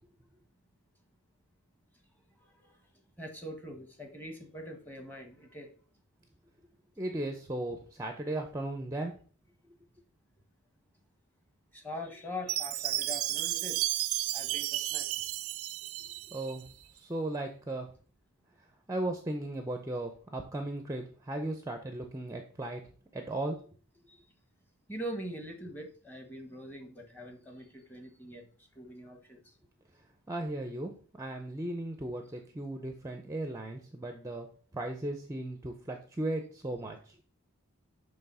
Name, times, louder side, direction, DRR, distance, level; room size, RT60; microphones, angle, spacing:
voice 1, 3.2-5.7 11.7-14.0 14.3-15.3 24.1-24.2 24.9-28.5 28.7-29.4, equal, 10° left, 1.0 m, -43 dB
voice 2, 7.0-9.1 16.3-16.7 16.9-17.9 18.9-22.8 23.1-23.6 30.3-34.5 34.7-37.2, right 1 dB, 15° right, 0.5 m, -36 dB
Chime, 12.5-16.6, right 15 dB, 65° right, 0.3 m, -33 dB
6.9 x 3.4 x 5.4 m
head